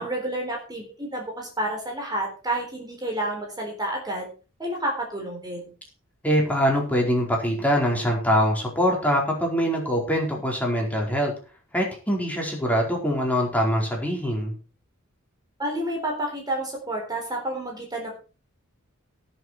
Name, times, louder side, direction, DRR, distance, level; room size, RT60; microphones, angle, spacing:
voice 1, 0.0-4.3 4.6-5.7 15.6-18.1, right 1 dB, 20° right, 1 dB, 3.9 m, -30 dB
voice 2, 6.2-11.3 11.7-14.5, equal, 10° left, -1 dB, 4.6 m, -23 dB
18.5 x 7.1 x 4.7 m, 0.35 s
head